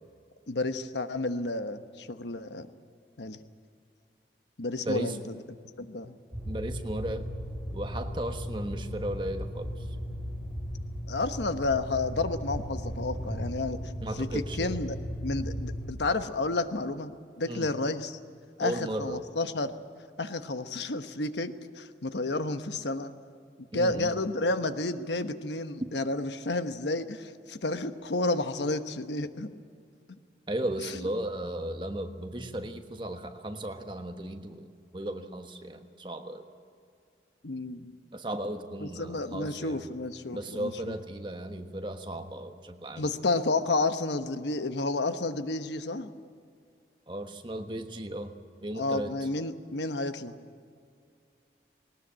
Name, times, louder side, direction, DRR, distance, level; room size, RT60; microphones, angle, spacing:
voice 1, 0.5-2.7 3.2-3.4 4.6-5.4 5.8-6.1 11.1-15.0 15.2-17.1 17.4-18.2 18.6-19.7 20.2-23.1 23.7-29.5 30.1-30.2 30.8-31.1 37.4-37.9 38.8-40.9 43.0-46.1 48.7-50.4, left 2 dB, 85° left, 9 dB, 1.1 m, -31 dB
voice 2, 4.8-5.2 5.8-5.9 6.5-7.2 7.7-9.7 14.0-14.8 17.5-17.7 18.6-19.2 23.7-24.1 30.5-34.7 34.9-36.4 38.1-39.8 40.3-43.1 47.1-48.3 48.6-49.1, right 1 dB, 25° right, 6 dB, 1.3 m, -35 dB
sound 1, 6.3-15.9, equal, 10° right, 3.8 m, -36 dB
20.0 x 19.0 x 8.7 m, 2.3 s
head